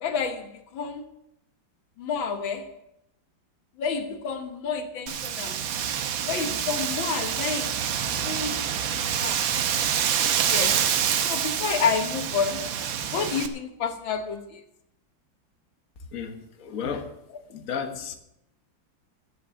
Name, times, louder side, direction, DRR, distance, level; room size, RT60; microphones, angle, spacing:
voice 1, 0.0-1.1 2.0-2.7 3.8-5.6 6.3-8.0 8.2-9.4 10.5-10.8 11.2-12.7 13.1-14.6, left 6 dB, 85° left, 2.0 m, -30 dB
Wind, 5.1-13.5, right 8 dB, 80° right, 1.7 m, -27 dB
voice 2, 16.1-17.1 17.5-18.1, left 6 dB, 45° left, 1.6 m, -33 dB
14.5 x 7.7 x 6.8 m
omnidirectional pair, 2.1 m